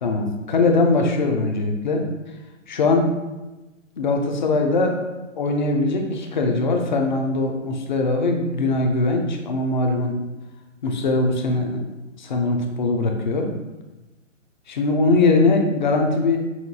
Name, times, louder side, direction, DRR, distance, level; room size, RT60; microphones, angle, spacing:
voice 1, 0.0-2.0 2.7-3.1 4.0-5.0 5.4-10.2 10.8-11.8 12.2-13.5 14.7-16.4, left 3 dB, 40° left, 3 dB, 0.5 m, -21 dB
5.6 x 2.5 x 2.7 m, 1.1 s
hypercardioid pair, 155°, 39 cm